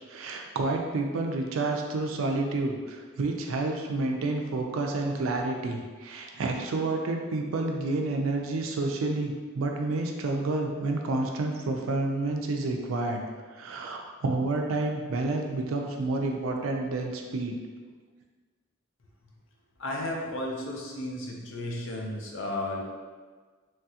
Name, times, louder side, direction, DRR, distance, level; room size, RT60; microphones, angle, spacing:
voice 1, 0.1-13.2 13.5-17.6, right 2 dB, 90° right, 2 dB, 0.4 m, -29 dB
voice 2, 19.8-22.8, left 1 dB, 75° left, 0 dB, 0.5 m, -33 dB
3.0 x 2.3 x 2.7 m, 1.4 s
head